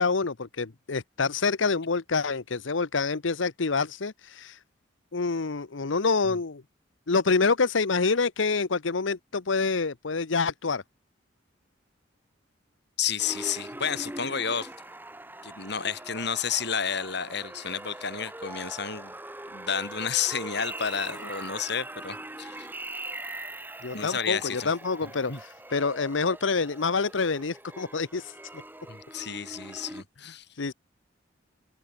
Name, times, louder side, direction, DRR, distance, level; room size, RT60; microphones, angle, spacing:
voice 1, 0.0-4.6 5.1-6.6 7.1-10.8 23.8-28.3 30.2-30.7, left 4 dB, 80° left, 0.9 m, -27 dB
voice 2, 13.0-14.7 15.4-19.1 19.5-22.7 23.9-24.7 25.3-25.4 28.9-30.4, left 7 dB, 60° left, 6.7 m, -31 dB
sound 1, 13.2-30.0, right 1 dB, 10° right, 5.1 m, -42 dB
open air
head